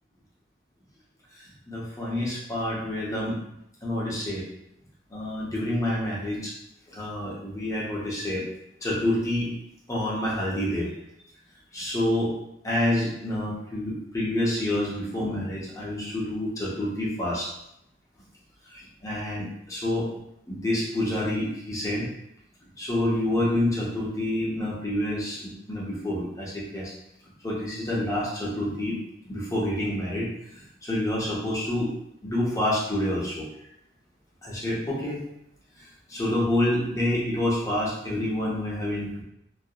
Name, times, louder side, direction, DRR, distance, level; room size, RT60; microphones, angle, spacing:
voice 1, 1.4-3.4 3.8-4.4 5.1-6.5 6.9-8.5 8.8-9.5 9.9-10.9 11.7-12.3 12.6-17.5 18.7-20.1 20.5-22.1 22.8-26.9 27.4-29.0 29.2-31.9 32.2-33.5 34.4-35.2 35.8-39.2, left 1 dB, 15° left, -6 dB, 0.6 m, -28 dB
2.3 x 2.0 x 2.7 m, 0.79 s
head